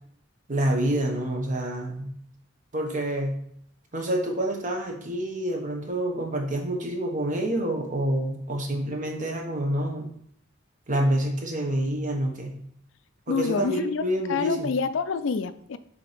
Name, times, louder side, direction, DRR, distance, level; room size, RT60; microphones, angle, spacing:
voice 1, 0.5-2.1 2.7-3.4 3.9-10.1 10.9-12.6 13.3-14.7, right 1 dB, 40° right, 1.2 m, -27 dB
voice 2, 13.3-15.8, left 5 dB, 65° left, 0.4 m, -27 dB
6.9 x 2.9 x 5.1 m
head